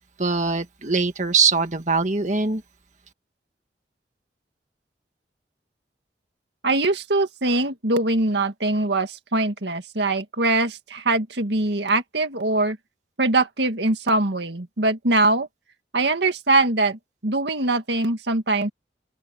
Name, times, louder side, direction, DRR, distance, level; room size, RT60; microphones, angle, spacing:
voice 1, 0.2-2.6, right 4 dB, 45° right, 1.8 m, -22 dB
voice 2, 6.6-12.8 13.2-15.5 15.9-18.7, right 2 dB, 80° right, 2.0 m, -22 dB
head